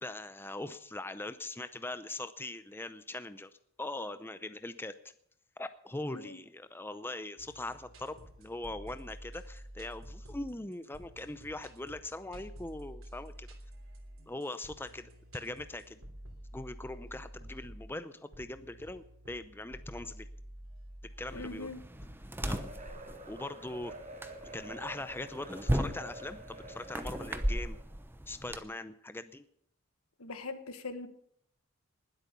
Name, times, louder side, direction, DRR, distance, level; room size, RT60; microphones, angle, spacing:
voice 1, 0.0-3.5 3.8-4.9 5.6-13.5 14.3-16.0 16.5-20.3 21.2-21.7 22.4-22.6 23.2-23.9 24.5-27.8 28.3-29.4, left 2 dB, 10° left, 11 dB, 0.6 m, -41 dB
sound 1, 7.4-22.2, equal, 65° right, 3.1 m, -50 dB
voice 2, 21.3-21.8 30.2-31.1, left 3 dB, 85° left, 10 dB, 1.6 m, -41 dB
sound 2, 21.3-28.6, equal, 10° right, 0.9 m, -37 dB
sound 3, 22.4-27.8, right 1 dB, 35° right, 2.7 m, -48 dB
20.0 x 8.3 x 6.8 m, 0.68 s
head